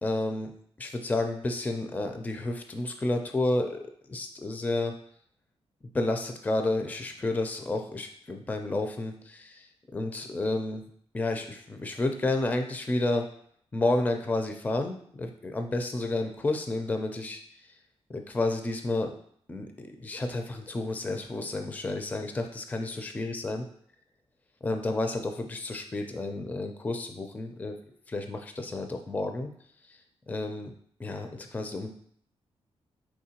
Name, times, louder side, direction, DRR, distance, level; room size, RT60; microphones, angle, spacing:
voice 1, 0.0-0.5 0.8-3.8 4.1-4.9 5.9-9.7 9.9-10.8 11.1-13.3 13.7-17.4 18.1-19.1 19.5-23.6 24.6-27.7 28.1-29.5 29.9-30.0 30.3-30.7 31.0-31.9, left 2 dB, 15° left, 5 dB, 0.4 m, -31 dB
4.5 x 3.6 x 2.8 m, 0.62 s
wide cardioid pair, 130°, 11 cm